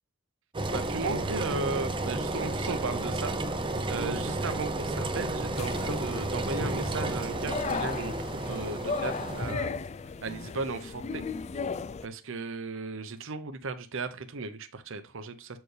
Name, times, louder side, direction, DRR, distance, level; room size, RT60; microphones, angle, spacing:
Engine, 0.5-9.5, right 2 dB, 25° right, 0.6 m, -32 dB
voice 1, 0.7-3.4 3.9-9.7 10.2-11.2 12.0-15.6, right 4 dB, 65° right, 10 dB, 0.7 m, -36 dB
sound 1, 5.5-12.1, left 5 dB, 30° left, 0.3 m, -36 dB
8.0 x 4.5 x 3.3 m, 0.31 s
head